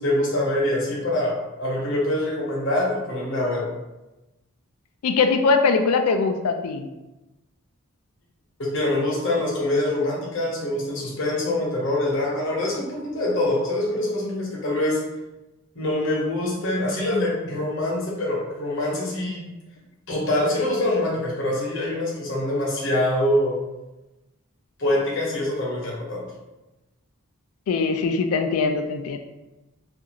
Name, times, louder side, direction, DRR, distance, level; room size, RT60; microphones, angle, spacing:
voice 1, 0.0-3.7 8.7-15.0 15.7-19.4 20.1-23.6 24.8-26.2, left 1 dB, 55° left, -4 dB, 0.8 m, -24 dB
voice 2, 5.0-6.9 27.7-29.2, left 4 dB, 85° left, 6 dB, 0.3 m, -21 dB
2.5 x 2.4 x 2.8 m, 1.0 s
head